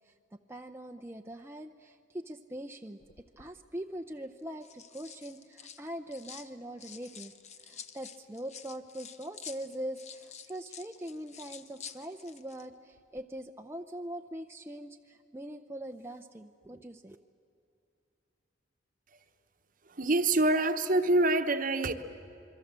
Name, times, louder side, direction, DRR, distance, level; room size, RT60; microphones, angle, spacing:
voice 1, 0.5-3.0 3.4-7.3 7.6-17.2, right 1 dB, 15° right, 4 dB, 0.6 m, -42 dB
sound 1, 3.0-3.5 4.4-6.5 6.8-12.7 12.9-13.2, left 7 dB, 35° left, 0.9 m, -49 dB
voice 2, 19.9-21.9, right 2 dB, 45° right, 9 dB, 1.1 m, -26 dB
26.5 x 23.0 x 7.5 m, 2.7 s
head